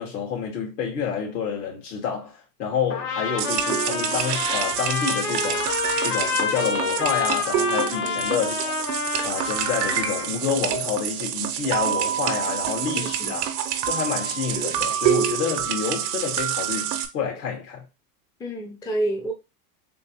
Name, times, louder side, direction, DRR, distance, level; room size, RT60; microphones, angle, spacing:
voice 1, 0.0-5.7 6.0-8.8 9.2-13.5 13.8-17.8, left 7 dB, 75° left, 2.0 m, -28 dB
Trumpet, 2.9-10.3, left 5 dB, 60° left, 1.3 m, -28 dB
sound 1, 3.4-17.1, right 9 dB, 80° right, 0.8 m, -27 dB
voice 2, 13.0-13.3 18.4-19.3, right 1 dB, 10° left, 0.5 m, -29 dB
3.6 x 2.8 x 2.9 m
hypercardioid pair, 115°, 48 cm